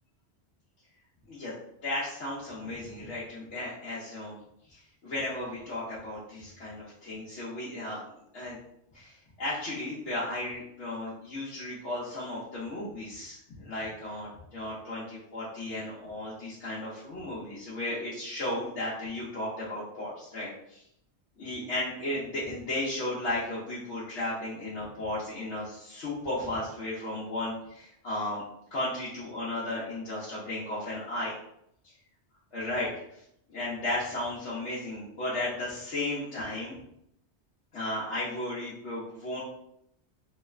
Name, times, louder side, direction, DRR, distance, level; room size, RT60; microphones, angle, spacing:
voice 1, 1.8-4.4 4.7-8.0 8.3-8.6 8.9-20.8 21.4-28.4 28.7-31.4 32.5-33.2 33.5-36.7 37.7-39.4, left 1 dB, 85° left, -9 dB, 1.1 m, -35 dB
3.0 x 2.3 x 3.1 m, 0.75 s
omnidirectional pair, 1.1 m